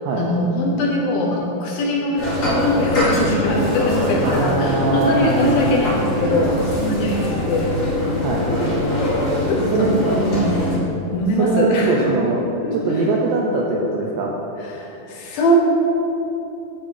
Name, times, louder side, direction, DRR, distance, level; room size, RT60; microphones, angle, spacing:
voice 1, 0.1-7.9 9.5-9.9 10.2-10.6 11.1-12.1 12.6-13.0 14.6-15.5, left 1 dB, 70° left, -3 dB, 2.8 m, -22 dB
sound 1, 2.2-10.8, equal, 30° left, 1.5 m, -22 dB
voice 2, 4.2-5.7 8.2-8.5 9.7-9.9 11.4-12.4 12.7-14.4, right 4 dB, 80° right, -1 dB, 2.0 m, -22 dB
10.5 x 7.5 x 3.0 m, 2.9 s
omnidirectional pair, 4.5 m